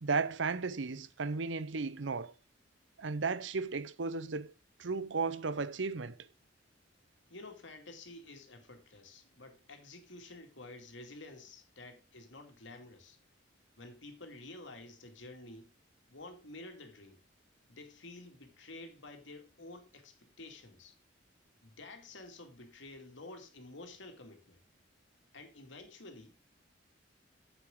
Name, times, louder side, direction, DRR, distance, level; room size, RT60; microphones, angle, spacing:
voice 1, 0.0-2.3 3.0-4.5 4.8-6.2, right 4 dB, 85° right, 0.7 m, -34 dB
voice 2, 7.3-13.2 13.8-15.7 16.1-17.2 17.7-21.0 21.6-24.6 25.3-26.4, left 2 dB, 85° left, 2.5 m, -50 dB
9.6 x 8.1 x 3.7 m
head